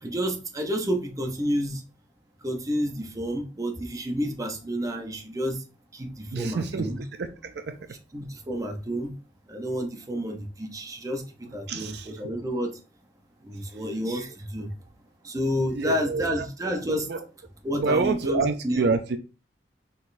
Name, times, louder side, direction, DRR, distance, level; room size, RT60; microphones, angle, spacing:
voice 1, 0.0-1.8 2.4-5.6 5.9-7.0 8.1-9.1 9.5-11.2 11.5-12.8 13.4-14.7 15.2-17.1 17.6-18.9, equal, 20° right, 0.7 m, -30 dB
voice 2, 6.3-6.9 7.2-7.8 11.7-12.1 15.7-16.4 16.9-17.2 17.7-19.2, right 4 dB, 65° right, 0.4 m, -27 dB
4.2 x 3.9 x 2.6 m
head